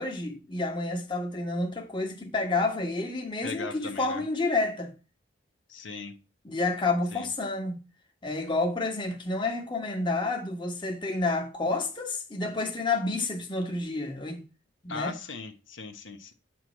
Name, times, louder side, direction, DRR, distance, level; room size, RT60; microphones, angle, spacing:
voice 1, 0.0-4.9 6.4-7.8 8.2-14.4 14.8-15.2, left 3 dB, 25° left, 1.4 m, -29 dB
voice 2, 3.4-4.2 5.7-6.2 7.1-7.3 14.9-16.3, left 4 dB, 80° left, 1.0 m, -39 dB
9.1 x 3.1 x 6.3 m
head